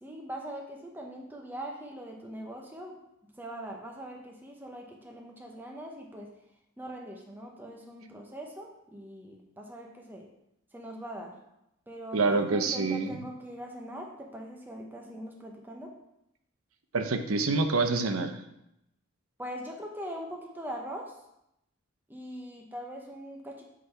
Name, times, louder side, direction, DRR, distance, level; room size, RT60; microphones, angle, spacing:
voice 1, 0.0-6.3 6.8-10.3 10.7-11.4 11.9-16.0 19.4-21.2 22.1-23.6, equal, 10° right, 0 dB, 0.8 m, -42 dB
voice 2, 12.1-13.2 16.9-18.4, right 3 dB, 85° right, 7 dB, 0.8 m, -27 dB
8.4 x 4.0 x 5.6 m, 0.82 s
head